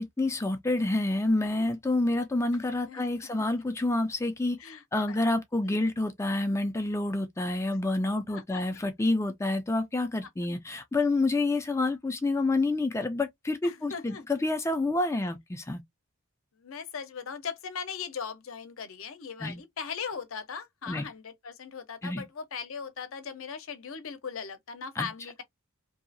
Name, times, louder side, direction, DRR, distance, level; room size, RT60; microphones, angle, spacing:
voice 1, 0.0-4.6 4.9-15.8 19.4-19.6 20.9-21.1 22.0-22.2 25.0-25.1, left 2 dB, 15° left, 0.3 m, -28 dB
voice 2, 2.5-3.5 4.6-5.2 7.7-7.8 8.1-8.8 13.6-14.2 16.6-25.4, left 6 dB, 65° left, 0.6 m, -39 dB
2.7 x 2.4 x 2.5 m
head